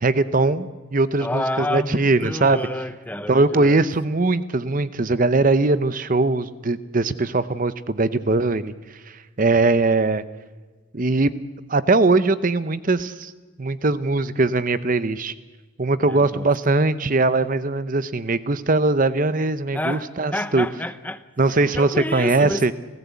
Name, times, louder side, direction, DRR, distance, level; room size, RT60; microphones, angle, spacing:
voice 1, 0.0-2.6 3.3-8.7 9.4-10.2 10.9-11.3 11.7-13.3 13.6-15.3 15.8-20.7 21.4-22.7, right 3 dB, 40° right, 14 dB, 0.7 m, -20 dB
voice 2, 1.2-3.9 16.1-16.5 19.7-21.2 21.7-22.7, left 1 dB, 10° left, 12 dB, 0.7 m, -29 dB
29.5 x 15.5 x 8.3 m, 1.4 s
head